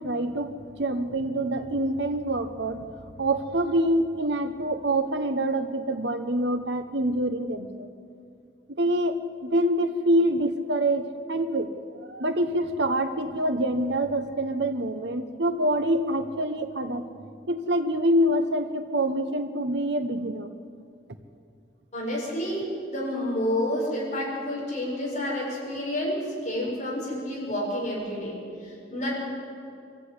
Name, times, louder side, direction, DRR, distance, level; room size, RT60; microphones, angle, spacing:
voice 1, 0.0-7.9 8.8-11.7 12.1-17.1 17.5-20.5, right 1 dB, 65° right, 8 dB, 1.1 m, -26 dB
voice 2, 21.9-29.1, left 1 dB, 35° left, -4 dB, 7.3 m, -29 dB
23.0 x 15.0 x 9.9 m, 2.4 s
head